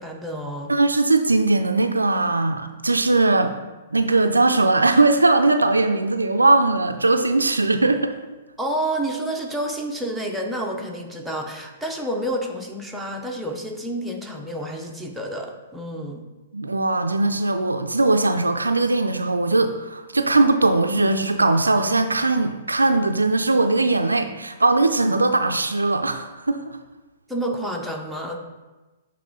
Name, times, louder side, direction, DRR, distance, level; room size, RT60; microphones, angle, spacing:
voice 1, 0.0-0.7 8.6-16.2 27.3-28.4, right 1 dB, ahead, -1 dB, 0.7 m, -29 dB
voice 2, 0.7-3.5 3.9-8.1 16.5-26.8, right 2 dB, 80° right, 7 dB, 0.4 m, -20 dB
7.6 x 3.6 x 3.8 m, 1.2 s
figure-of-eight pair, 115°, 0 cm